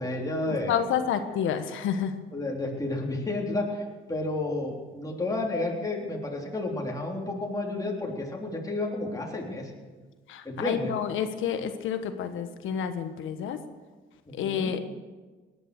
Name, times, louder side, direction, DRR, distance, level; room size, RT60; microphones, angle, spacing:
voice 1, 0.0-0.8 2.3-9.7 10.4-10.9 14.3-14.7, left 2 dB, 15° left, -1 dB, 3.6 m, -31 dB
voice 2, 0.7-2.1 10.3-13.6 14.3-14.8, left 8 dB, 80° left, 9 dB, 1.3 m, -29 dB
18.5 x 10.0 x 6.8 m, 1.3 s
cardioid pair, 90°, 20 cm